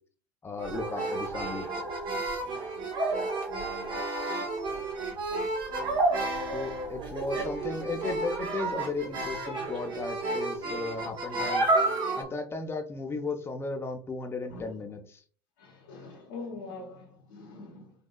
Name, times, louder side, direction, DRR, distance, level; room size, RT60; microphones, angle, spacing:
voice 1, 0.4-1.9 6.5-11.7 12.2-15.2, left 3 dB, 20° left, 0.7 m, -35 dB
sound 1, 0.6-12.2, right 2 dB, 45° right, 1.1 m, -31 dB
voice 2, 14.5-14.8 15.6-17.9, left 3 dB, 65° left, 0.9 m, -43 dB
4.0 x 2.7 x 2.3 m
figure-of-eight pair, 70°, 11 cm